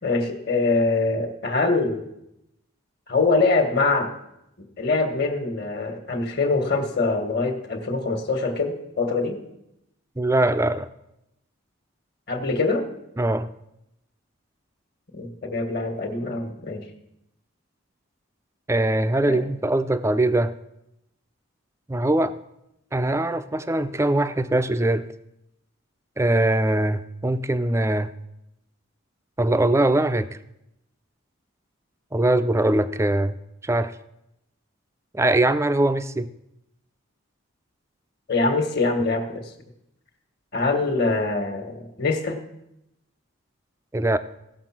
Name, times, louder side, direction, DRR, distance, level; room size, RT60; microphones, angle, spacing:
voice 1, 0.0-2.0 3.1-4.1 4.8-9.4 12.3-12.9 15.1-16.8 19.2-19.4 38.3-39.4 40.5-42.4, left 3 dB, 50° left, 6 dB, 1.5 m, -24 dB
voice 2, 10.2-10.9 13.2-13.5 18.7-20.6 21.9-22.3 22.9-25.1 26.2-28.1 29.4-30.3 32.1-33.3 33.6-33.9 35.1-36.3 43.9-44.2, right 1 dB, 15° right, 12 dB, 0.4 m, -22 dB
16.0 x 6.7 x 5.9 m, 0.85 s
head